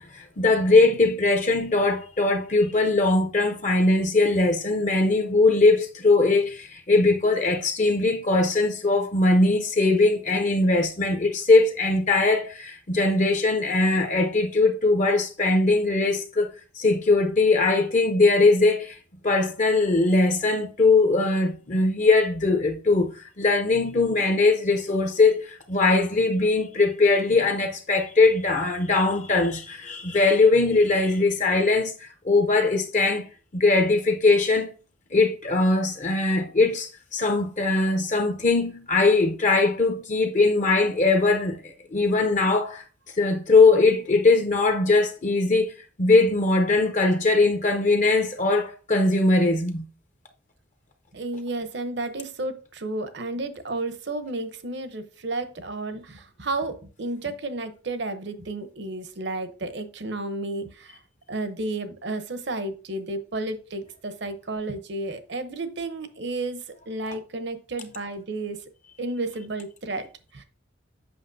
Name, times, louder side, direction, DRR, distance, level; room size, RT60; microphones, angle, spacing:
voice 1, 0.0-16.5 16.8-19.0 19.2-33.2 33.5-34.7 35.1-42.8 43.2-45.7 46.0-49.8, left 3 dB, 35° left, 0.6 m, -21 dB
voice 2, 51.1-61.0 61.3-68.6 69.0-70.4, right 2 dB, 55° right, 0.8 m, -32 dB
7.8 x 5.9 x 2.6 m
head